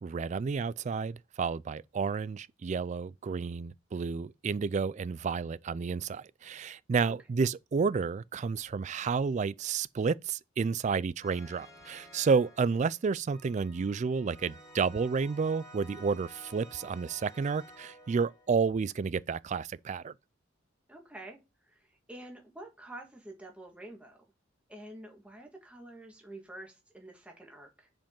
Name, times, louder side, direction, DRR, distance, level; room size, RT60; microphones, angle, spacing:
voice 1, 0.0-20.1, right 5 dB, 35° right, 0.3 m, -31 dB
sound 1, 11.2-18.5, equal, 20° left, 2.5 m, -53 dB
voice 2, 20.9-21.4 21.6-24.2 24.7-27.9, right 1 dB, 5° right, 1.7 m, -48 dB
7.1 x 5.1 x 3.8 m
head